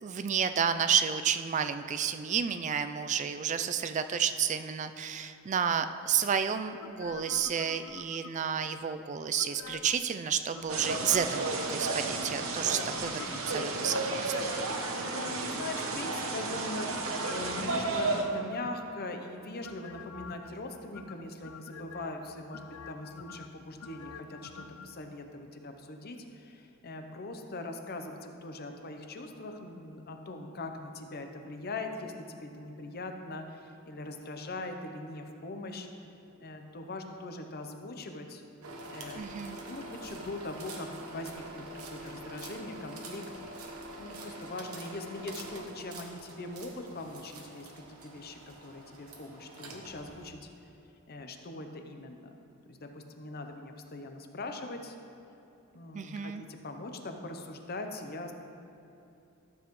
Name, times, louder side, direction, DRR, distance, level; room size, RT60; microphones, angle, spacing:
voice 1, 0.0-14.5 39.2-39.6 55.9-56.4, right 7 dB, 35° right, 10 dB, 0.3 m, -31 dB
sound 1, 6.8-8.6 9.4-10.1 10.5-12.0 12.4-14.1 16.9-19.0 19.6-20.5 20.9-22.1 22.5-24.9 25.2-25.3, left 6 dB, 80° left, 0.4 m, -47 dB
sound 2, 10.7-18.2, right 3 dB, 70° right, 0.9 m, -33 dB
voice 2, 15.0-35.9 36.4-38.4 38.9-43.2 44.0-50.5 51.1-52.4 52.7-55.0 55.7-58.3, left 2 dB, 45° left, 5 dB, 0.7 m, -41 dB
sound 3, 38.6-50.3, right 1 dB, 90° right, 1.1 m, -45 dB
13.0 x 7.2 x 3.1 m, 2.8 s
head